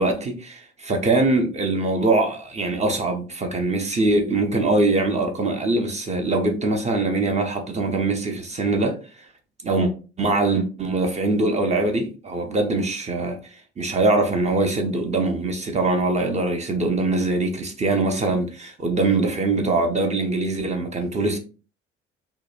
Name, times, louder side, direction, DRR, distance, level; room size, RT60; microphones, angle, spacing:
voice 1, 0.0-9.0 9.6-9.9 10.2-13.4 13.8-21.4, right 2 dB, 20° right, 0.5 m, -22 dB
2.8 x 2.1 x 2.3 m
figure-of-eight pair, 45°, 32 cm